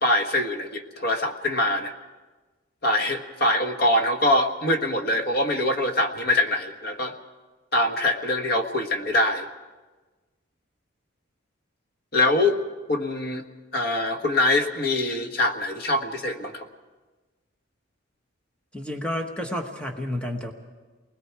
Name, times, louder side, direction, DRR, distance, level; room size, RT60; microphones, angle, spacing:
voice 1, 0.0-1.9 2.8-7.2 7.7-9.5 12.1-12.6 12.9-13.4 13.7-16.7, left 1 dB, 50° left, 4 dB, 1.4 m, -23 dB
voice 2, 18.7-20.5, left 1 dB, 5° left, 2 dB, 1.2 m, -30 dB
29.5 x 21.0 x 4.7 m, 1.3 s
head